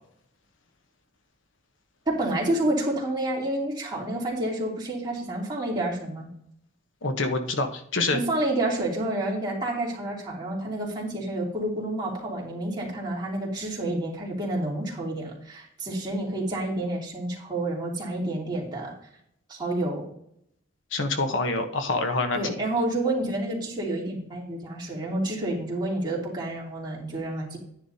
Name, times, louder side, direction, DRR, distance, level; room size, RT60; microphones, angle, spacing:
voice 1, 2.1-6.3 8.1-18.9 19.5-20.0 22.3-27.6, right 1 dB, 25° right, -4 dB, 2.9 m, -29 dB
voice 2, 7.0-8.2 20.9-22.6, left 3 dB, 80° left, 6 dB, 1.1 m, -26 dB
10.5 x 10.0 x 2.8 m, 0.70 s
head